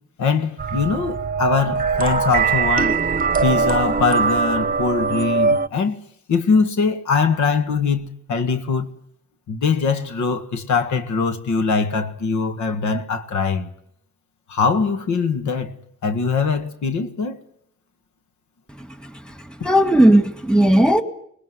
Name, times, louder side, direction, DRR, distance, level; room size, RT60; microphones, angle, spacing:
voice 1, 0.2-3.0 3.4-6.0 6.3-8.9 9.5-13.7 14.5-15.7 16.0-17.4, left 5 dB, 70° left, 1.8 m, -22 dB
sound 1, 0.6-5.7, right 5 dB, 30° right, 1.0 m, -21 dB
voice 2, 18.8-21.0, right 1 dB, 5° left, 2.2 m, -17 dB
23.0 x 20.0 x 9.4 m
cardioid pair, 90°, 30 cm